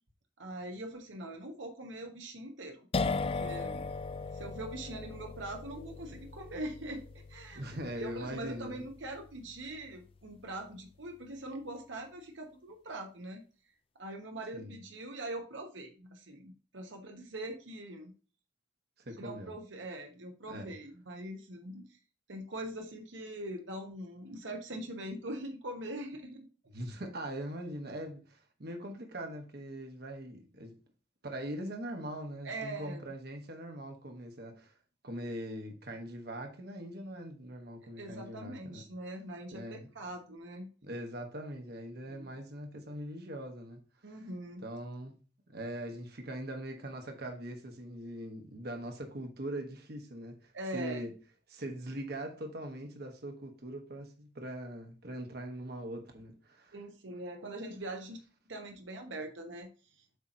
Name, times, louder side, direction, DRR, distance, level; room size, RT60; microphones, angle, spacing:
voice 1, 0.4-3.9 4.3-7.0 7.3-7.6 8.0-13.4 14.0-18.1 19.2-22.0 22.3-26.4 32.4-33.1 38.0-40.7 42.1-42.3 44.0-44.6 50.5-51.1 56.7-58.2 58.5-59.7 60.0-60.1, right 1 dB, 85° right, 1.0 m, -42 dB
sound 1, 2.9-10.5, left 4 dB, 30° left, 0.4 m, -38 dB
voice 2, 7.5-8.8 14.5-14.8 19.0-19.5 20.5-20.7 26.7-30.7 31.2-34.7 35.0-38.8 39.5-39.9 40.8-44.3 44.6-45.2 45.5-51.1 51.5-56.7, right 1 dB, 60° right, 1.2 m, -41 dB
8.1 x 3.0 x 5.1 m
head